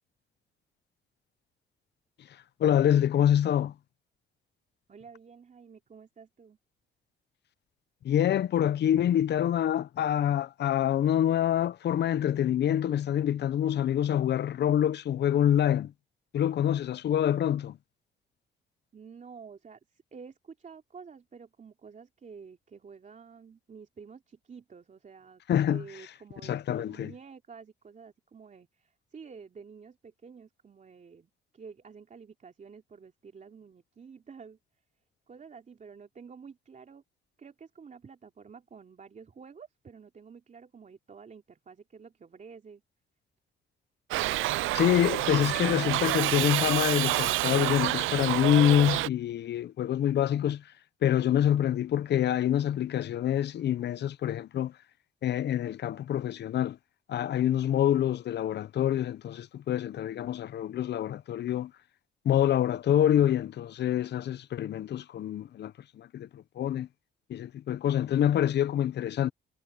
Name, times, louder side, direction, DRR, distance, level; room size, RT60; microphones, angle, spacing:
voice 1, 2.6-3.7 8.0-15.9 16.3-17.8 25.5-25.8 26.4-27.1 44.7-50.6 51.0-54.7 55.2-56.8 57.1-61.7 62.2-66.9 67.3-69.3, left 10 dB, 60° left, 0.7 m, -26 dB
voice 2, 4.9-6.6 18.9-25.4 25.7-34.6 35.3-37.0 37.4-42.8, right 5 dB, 40° right, 3.2 m, -50 dB
Shout / Livestock farm animals working animals, 44.1-49.1, right 17 dB, 85° right, 0.5 m, -28 dB
cardioid pair, 90°, 20 cm